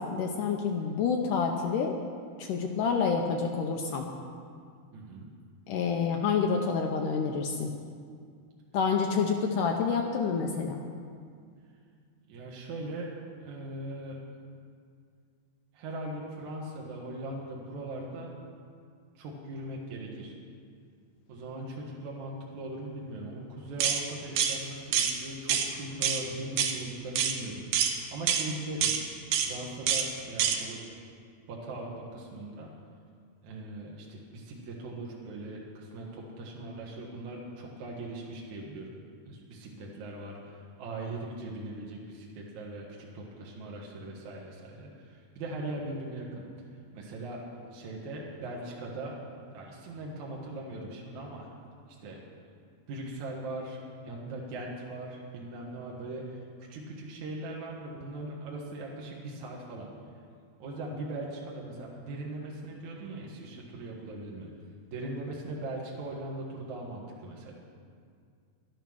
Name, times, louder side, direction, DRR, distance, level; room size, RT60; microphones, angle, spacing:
voice 1, 0.0-2.0 2.4-4.1 5.7-7.7 8.7-10.8, left 5 dB, 75° left, 2 dB, 2.0 m, -28 dB
voice 2, 4.9-5.3 12.3-13.1 13.4-14.2 15.7-18.3 19.2-20.4 21.3-28.9 29.4-30.8 31.5-32.7 33.4-38.9 39.3-46.4 46.9-47.4 47.7-49.2 49.5-51.5 52.0-52.2 52.9-59.9 60.6-64.5 64.9-67.5, right 2 dB, 60° right, -3 dB, 2.6 m, -40 dB
sound 1, 23.8-24.0 24.4-24.6 24.9-25.1 25.5-25.7 26.0-26.2 26.6-26.8 27.2-27.4 27.7-27.9 28.3-28.5 28.8-29.0 29.3-29.5 29.9-30.1 30.4-30.6, right 8 dB, 80° right, 2.9 m, -26 dB
12.5 x 11.5 x 6.2 m, 2.2 s
omnidirectional pair, 4.4 m